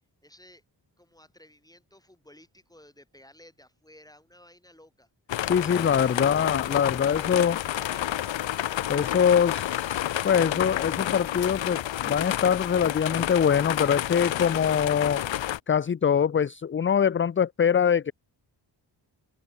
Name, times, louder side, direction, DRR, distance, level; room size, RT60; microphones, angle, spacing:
voice 1, 0.2-0.6 1.0-5.1, left 1 dB, 10° left, 7.1 m, -55 dB
sound 1, 5.3-15.6, left 12 dB, 85° left, 0.9 m, -30 dB
voice 2, 5.4-7.6 8.9-15.2 15.7-18.1, left 7 dB, 30° left, 0.5 m, -23 dB
Trumpet, 7.7-12.7, left 8 dB, 55° left, 1.5 m, -47 dB
open air
wide cardioid pair, 130°, 44 cm